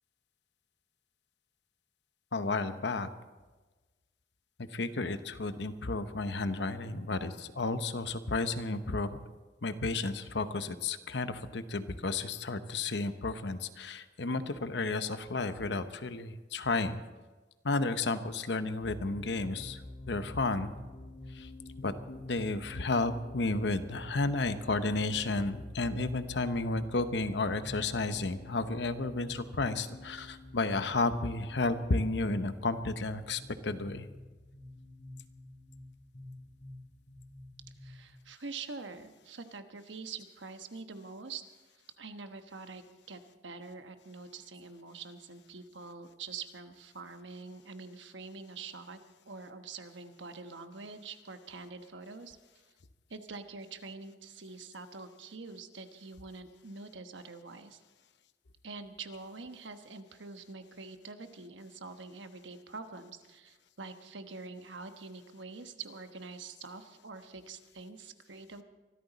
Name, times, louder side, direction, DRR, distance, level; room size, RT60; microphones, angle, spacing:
voice 1, 2.3-3.1 4.6-9.2 9.6-17.0 17.6-19.8 20.1-20.7 21.3-21.5 21.8-34.1, left 3 dB, 70° left, 11 dB, 0.9 m, -32 dB
sound 1, 18.8-38.1, left 1 dB, 40° left, 3.7 m, -49 dB
voice 2, 37.8-41.4 42.0-49.0 49.3-52.4 53.1-57.8 58.6-68.6, right 4 dB, 90° right, 8 dB, 1.1 m, -45 dB
24.0 x 13.0 x 4.1 m, 1.3 s
head